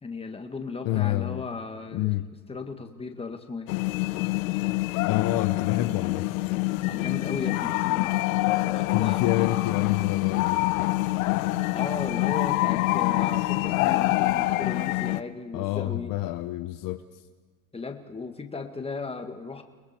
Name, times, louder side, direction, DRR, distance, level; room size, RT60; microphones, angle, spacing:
voice 1, 0.0-2.1 2.5-3.7 6.9-8.2 8.7-9.9 11.7-16.1 17.7-19.6, left 4 dB, 15° left, 6 dB, 1.9 m, -36 dB
voice 2, 0.8-1.4 1.9-2.3 5.0-6.3 8.9-10.9 15.5-17.0, left 15 dB, 55° left, 11 dB, 1.0 m, -28 dB
sound 1, 3.7-15.2, left 20 dB, 85° left, 0.8 m, -26 dB
30.0 x 20.0 x 4.5 m, 1.4 s
supercardioid pair, 105°, 40 cm